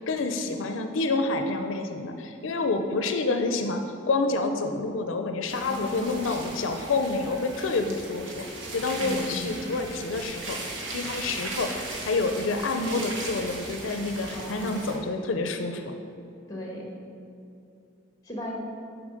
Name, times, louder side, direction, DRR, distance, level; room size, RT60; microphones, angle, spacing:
voice 1, 0.1-8.5 8.7-10.6 10.9-16.0, left 3 dB, 85° left, 6 dB, 0.5 m, -28 dB
sound 1, 5.5-15.0, right 2 dB, 80° right, 1.3 m, -37 dB
voice 2, 5.7-6.2 9.0-9.7 14.3-14.9 16.5-16.9 18.2-18.5, left 1 dB, 20° left, -2 dB, 1.4 m, -37 dB
7.3 x 4.7 x 5.1 m, 2.6 s
head